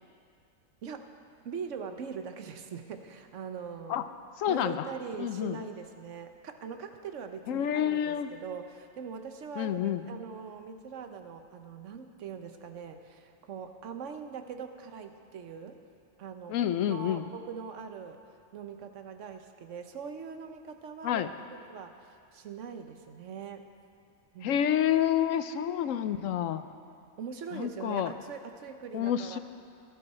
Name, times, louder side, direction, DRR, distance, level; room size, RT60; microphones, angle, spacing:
voice 1, 0.8-1.1 1.4-4.1 4.5-15.8 16.2-18.2 18.5-22.0 22.3-23.7 24.3-24.6 27.2-29.4, right 6 dB, 65° right, 7 dB, 1.2 m, -42 dB
voice 2, 4.4-4.9 5.2-5.6 7.5-8.3 9.6-10.0 16.5-17.3 21.0-21.3 24.4-26.6 27.5-28.1 28.9-29.4, left 10 dB, 75° left, 11 dB, 0.9 m, -28 dB
18.0 x 12.0 x 4.3 m, 2.3 s
omnidirectional pair, 1.4 m